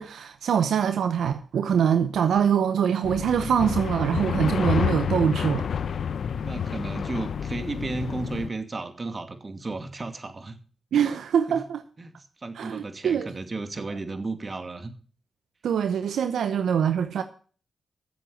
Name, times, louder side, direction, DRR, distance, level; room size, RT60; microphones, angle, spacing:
voice 1, 0.0-5.7 10.9-11.8 12.6-13.3 15.6-17.2, right 8 dB, 80° right, 0.8 m, -24 dB
sound 1, 3.0-8.5, left 7 dB, 70° left, 0.7 m, -29 dB
voice 2, 6.4-10.6 11.1-11.2 11.5-11.6 12.0-14.9, right 3 dB, 40° right, 2.4 m, -34 dB
13.5 x 7.8 x 6.5 m
supercardioid pair, 50°, 0 cm